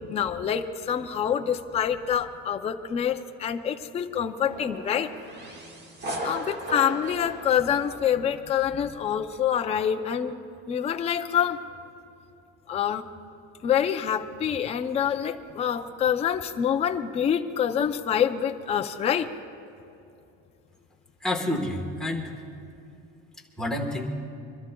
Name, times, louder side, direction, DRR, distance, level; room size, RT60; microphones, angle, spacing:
voice 1, 0.1-5.1 6.2-10.4 10.7-11.6 12.7-13.0 13.6-19.3, left 8 dB, 20° left, 6 dB, 0.4 m, -26 dB
sound 1, 4.4-8.5, right 1 dB, 35° right, 1.6 m, -37 dB
voice 2, 21.2-22.3 23.6-24.1, left 1 dB, ahead, -1 dB, 1.2 m, -28 dB
25.5 x 23.5 x 2.2 m, 2.7 s
cardioid pair, 180°, 30 cm